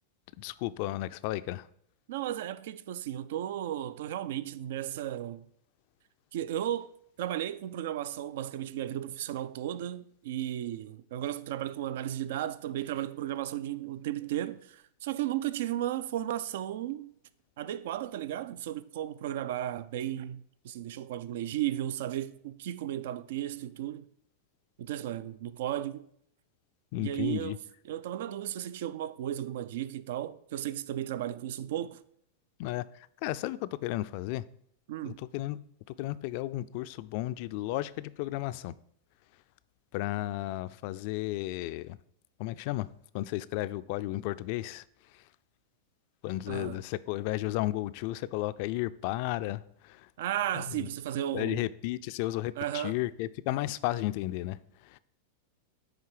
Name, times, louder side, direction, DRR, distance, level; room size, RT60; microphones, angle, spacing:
voice 1, 0.4-1.7 26.9-27.6 32.6-32.8 33.2-34.4 35.0-35.6 35.9-38.7 39.9-42.0 42.4-42.9 43.1-44.8 45.1-45.2 46.2-50.1 50.6-50.9 51.3-54.6 54.8-55.0, left 16 dB, 55° left, 0.3 m, -33 dB
voice 2, 2.1-5.5 6.3-6.9 7.2-17.1 17.6-24.0 24.8-26.0 27.0-27.6 27.9-32.0 34.9-35.2 46.5-46.8 50.2-51.7 52.6-53.0, right 12 dB, 70° right, 0.3 m, -34 dB
8.9 x 3.3 x 4.9 m
hypercardioid pair, 110°, 0 cm